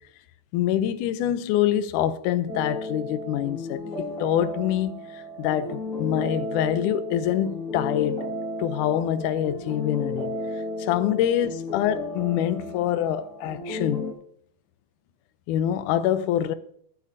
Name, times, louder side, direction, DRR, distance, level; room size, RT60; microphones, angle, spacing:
voice 1, 0.5-8.3 8.6-10.3 10.8-14.0 15.5-16.5, left 11 dB, 80° left, 1.9 m, -25 dB
sound 1, 2.5-14.1, left 1 dB, 30° left, 1.9 m, -33 dB
21.0 x 8.5 x 2.7 m
omnidirectional pair, 4.2 m